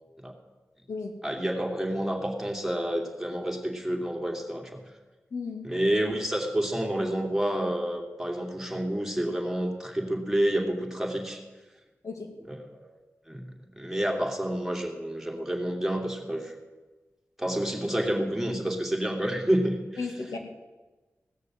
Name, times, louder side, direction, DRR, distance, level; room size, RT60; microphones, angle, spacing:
voice 1, 1.2-4.8 5.6-11.4 12.5-13.0 13.3-13.4 13.7-16.6 17.4-19.8, right 1 dB, 5° right, 1 dB, 2.7 m, -29 dB
voice 2, 5.3-5.7 12.0-12.3 20.0-20.4, left 4 dB, 90° left, 2 dB, 2.1 m, -34 dB
17.0 x 6.6 x 7.6 m, 1.2 s
wide cardioid pair, 60°, 5 cm